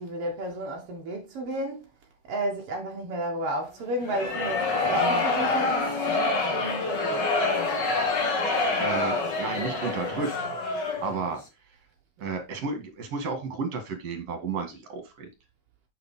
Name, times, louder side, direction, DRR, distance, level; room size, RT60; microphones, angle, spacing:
voice 1, 0.0-1.9 2.2-7.3, right 1 dB, 75° right, 1.3 m, -32 dB
sound 1, 4.0-11.2, left 3 dB, 90° left, 0.9 m, -26 dB
voice 2, 8.8-10.5 11.0-11.4 12.2-15.3, right 4 dB, 50° right, 2.2 m, -32 dB
7.3 x 5.6 x 3.6 m
omnidirectional pair, 4.7 m